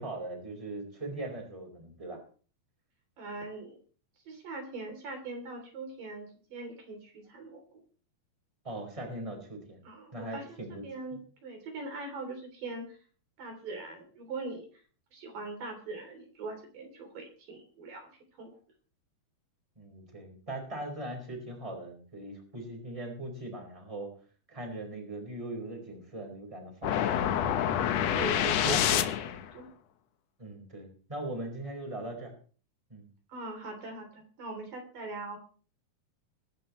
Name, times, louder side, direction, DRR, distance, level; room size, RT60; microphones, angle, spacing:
voice 1, 0.0-2.2 8.6-9.8 10.1-10.8 11.1-11.2 19.8-24.1 24.5-27.2 28.6-28.8 30.4-32.3 32.9-33.1, right 1 dB, 10° right, 3 dB, 4.6 m, -40 dB
voice 2, 3.2-3.8 4.3-7.8 9.8-13.0 13.4-14.7 15.1-18.1 18.4-18.5 28.1-29.1 29.5-29.7 33.3-35.4, right 3 dB, 60° right, 3 dB, 4.8 m, -41 dB
sound 1, 26.8-29.5, left 9 dB, 85° left, 1.4 m, -27 dB
23.0 x 11.5 x 3.2 m, 0.40 s
omnidirectional pair, 4.4 m